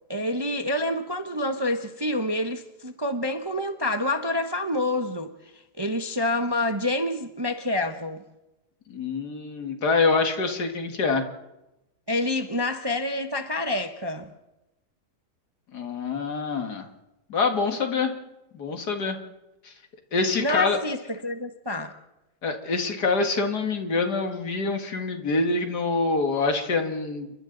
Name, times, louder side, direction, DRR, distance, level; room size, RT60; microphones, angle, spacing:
voice 1, 0.1-5.3 5.8-8.2 12.1-14.2 20.4-21.9, left 1 dB, 20° right, 0.8 m, -27 dB
voice 2, 8.9-11.2 15.7-16.9 17.3-18.1 18.5-19.2 19.6-19.7 20.1-20.8 22.4-27.3, left 4 dB, 70° left, 2.4 m, -25 dB
29.0 x 24.5 x 3.9 m
omnidirectional pair, 1.8 m